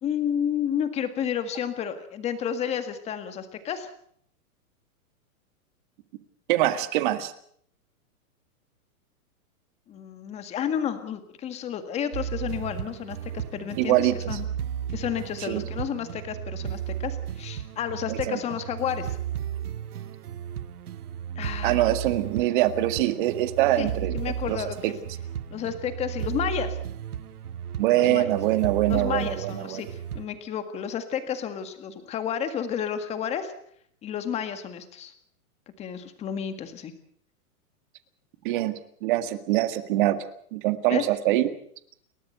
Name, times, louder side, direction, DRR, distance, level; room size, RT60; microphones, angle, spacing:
voice 1, 0.0-3.9 9.9-14.5 14.9-19.2 21.4-21.9 23.7-23.9 24.1-24.9 25.5-26.8 28.0-28.3 28.9-33.5 34.0-35.1 35.8-36.9 40.9-41.1, left 8 dB, 15° left, 9 dB, 1.8 m, -31 dB
voice 2, 6.5-7.3 13.8-14.4 15.4-15.6 18.1-18.4 21.6-24.1 24.5-24.6 24.8-24.9 27.8-29.8 38.4-38.7 39.0-40.2 40.5-41.5, right 14 dB, 35° right, 11 dB, 1.9 m, -24 dB
sound 1, 12.1-30.3, right 9 dB, 85° right, 1.9 m, -34 dB
29.5 x 13.5 x 7.9 m, 0.65 s
hypercardioid pair, 170°, 44 cm